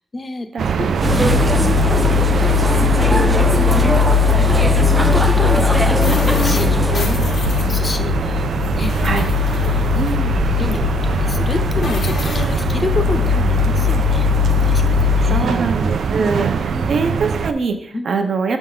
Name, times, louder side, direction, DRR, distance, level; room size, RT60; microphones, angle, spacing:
voice 1, 0.1-0.5 0.8-1.9 2.4-3.3 3.7-3.9 4.4-8.9 9.5-10.1 10.5-14.3 14.6-16.2 16.5-16.9 17.9-18.1, left 2 dB, 30° left, 8 dB, 0.6 m, -29 dB
sound 1, 0.6-17.5, right 6 dB, 85° right, 0.4 m, -22 dB
sound 2, 1.0-15.4, left 8 dB, 85° left, 1.4 m, -19 dB
sound 3, 1.0-7.0, right 1 dB, 15° right, 0.5 m, -22 dB
voice 2, 9.9-10.3 13.3-13.4 15.3-18.6, right 4 dB, 60° right, 7 dB, 0.7 m, -23 dB
7.7 x 3.6 x 5.4 m, 0.70 s
wide cardioid pair, 165°, 0 cm